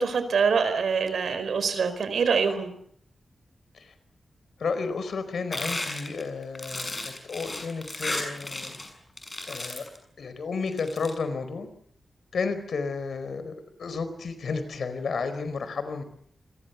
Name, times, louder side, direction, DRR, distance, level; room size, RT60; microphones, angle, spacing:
voice 1, 0.0-2.7, right 5 dB, 85° right, 11 dB, 4.6 m, -25 dB
voice 2, 4.6-8.8 9.5-9.8 10.2-11.7 12.3-16.0, left 4 dB, 75° left, 11 dB, 4.5 m, -32 dB
sound 1, 5.5-8.9 9.2-10.0 10.7-11.1, left 2 dB, 20° left, 6.5 m, -34 dB
28.5 x 22.0 x 7.0 m, 0.67 s
wide cardioid pair, 165°, 0 cm